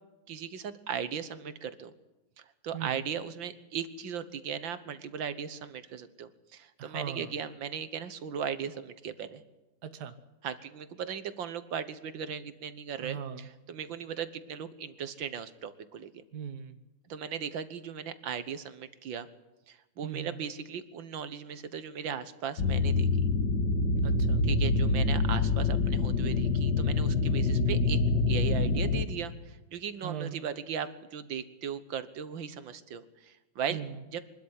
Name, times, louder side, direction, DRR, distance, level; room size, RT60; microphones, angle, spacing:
voice 1, 0.3-1.9 2.4-9.4 10.4-16.2 17.1-19.3 19.7-23.3 24.4-28.0 28.3-33.8 34.1-34.2, right 7 dB, 75° right, 13 dB, 1.9 m, -37 dB
voice 2, 6.8-7.4 9.8-10.1 13.0-13.5 16.3-16.8 20.0-20.4 24.0-24.4 30.0-30.4 33.7-34.0, right 7 dB, 60° right, 9 dB, 1.7 m, -39 dB
sound 1, 22.6-29.0, left 3 dB, 65° left, 2.0 m, -26 dB
23.5 x 12.5 x 9.8 m, 1.0 s
omnidirectional pair, 2.1 m